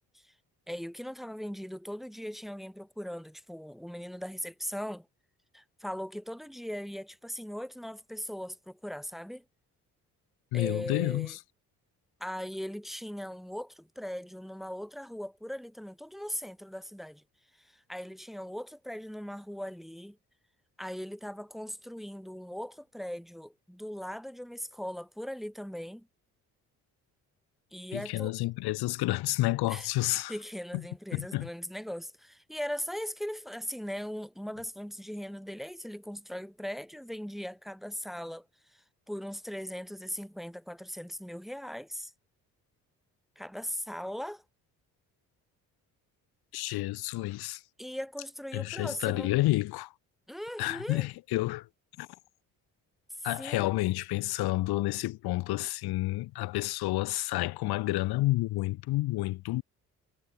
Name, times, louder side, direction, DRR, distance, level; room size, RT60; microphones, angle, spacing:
voice 1, 0.7-5.1 5.5-9.4 10.5-11.4 12.2-17.2 17.6-20.2 20.8-26.1 27.7-28.4 29.7-42.1 43.4-44.4 47.8-49.3 50.3-51.1 53.2-53.7, equal, ahead, 1.3 m, -39 dB
voice 2, 10.5-11.4 27.9-30.3 31.1-31.5 46.5-47.6 48.5-49.9 50.6-51.7 52.0-52.1 53.2-59.6, left 18 dB, 80° left, 1.0 m, -30 dB
supercardioid pair, 60°, 37 cm